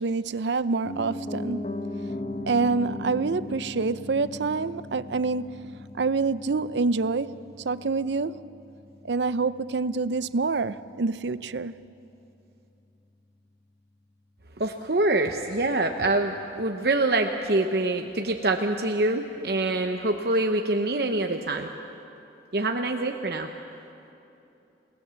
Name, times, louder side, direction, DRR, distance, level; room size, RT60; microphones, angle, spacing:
voice 1, 0.0-1.9 2.5-5.7 6.0-8.5 9.0-11.8, right 4 dB, 75° right, 0.6 m, -27 dB
Piano, 0.8-10.8 11.1-11.2, left 1 dB, 35° left, 0.9 m, -38 dB
voice 2, 14.6-21.7 22.5-23.5, right 2 dB, 60° right, 0.9 m, -25 dB
28.5 x 18.5 x 7.1 m
head